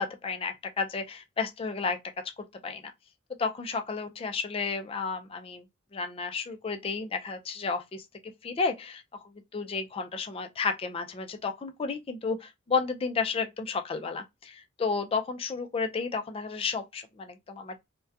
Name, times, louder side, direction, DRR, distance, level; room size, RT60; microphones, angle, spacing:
voice 1, 0.0-2.0 2.6-2.9 3.4-5.6 5.9-17.8, left 4 dB, 30° left, 0.3 m, -32 dB
2.6 x 2.1 x 2.3 m
head